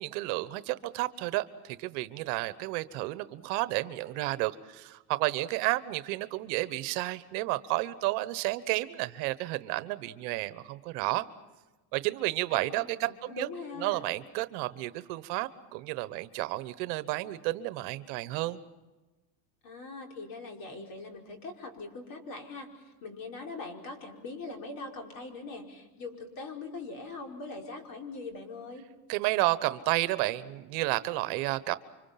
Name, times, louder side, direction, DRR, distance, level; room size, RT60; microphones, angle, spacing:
voice 1, 0.0-11.3 11.9-13.5 13.8-18.6 29.1-31.8, right 18 dB, 65° right, 14 dB, 1.3 m, -31 dB
voice 2, 12.5-14.0 19.6-22.7 23.0-28.9, left 3 dB, 45° left, 2 dB, 4.9 m, -42 dB
29.5 x 25.5 x 5.9 m, 1.1 s
supercardioid pair, 130°, 49 cm